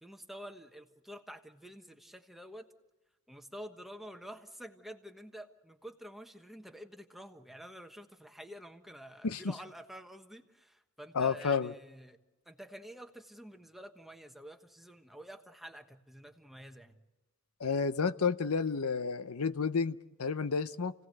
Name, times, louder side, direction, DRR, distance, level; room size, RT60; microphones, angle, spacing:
voice 1, 0.0-2.7 3.3-12.2 12.4-17.0, equal, ahead, 5 dB, 1.3 m, -49 dB
voice 2, 11.1-11.7 17.6-20.9, left 5 dB, 80° left, 13 dB, 0.7 m, -31 dB
29.5 x 17.5 x 7.9 m, 1.1 s
head